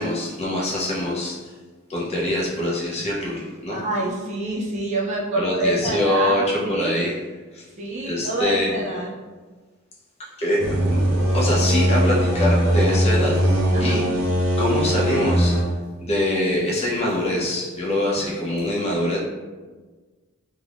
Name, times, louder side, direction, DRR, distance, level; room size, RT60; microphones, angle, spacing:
voice 1, 0.0-1.5 1.9-3.8 5.4-7.1 7.5-7.6 8.0-8.8 10.4-10.6 10.9-11.0 11.3-13.4 13.8-14.0 14.6-15.5 16.0-19.2, left 1 dB, 30° left, -5 dB, 0.6 m, -24 dB
voice 2, 3.7-7.0 7.8-9.1 13.7-14.0, right 1 dB, 35° right, -4 dB, 0.5 m, -27 dB
sound 1, 10.6-15.6, equal, 80° right, 0.6 m, -20 dB
2.4 x 2.3 x 3.4 m, 1.3 s
head